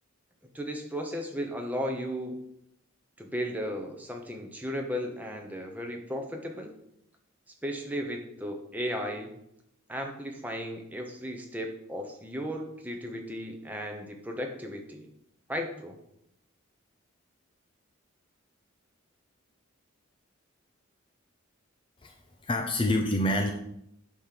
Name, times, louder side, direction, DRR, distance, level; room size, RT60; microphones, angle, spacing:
voice 1, 0.5-2.4 3.2-6.7 7.6-9.3 9.9-15.1 15.5-16.0, equal, 10° right, 3 dB, 0.8 m, -35 dB
voice 2, 22.4-23.5, left 1 dB, 25° left, 3 dB, 0.5 m, -26 dB
8.5 x 3.1 x 5.8 m, 0.77 s
head